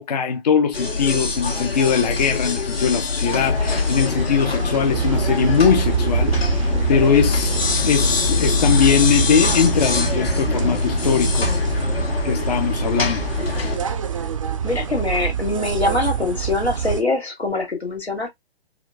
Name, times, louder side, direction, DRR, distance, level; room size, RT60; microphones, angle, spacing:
voice 1, 0.0-7.6 7.8-11.5 12.2-13.3, left 6 dB, 40° left, 0.6 m, -21 dB
sound 1, 0.7-13.8, left 4 dB, 70° left, 1.8 m, -23 dB
sound 2, 3.5-17.0, right 8 dB, 35° right, 0.4 m, -26 dB
voice 2, 14.6-18.3, left 2 dB, 85° left, 2.0 m, -23 dB
4.3 x 2.2 x 2.6 m
figure-of-eight pair, 140°, 31 cm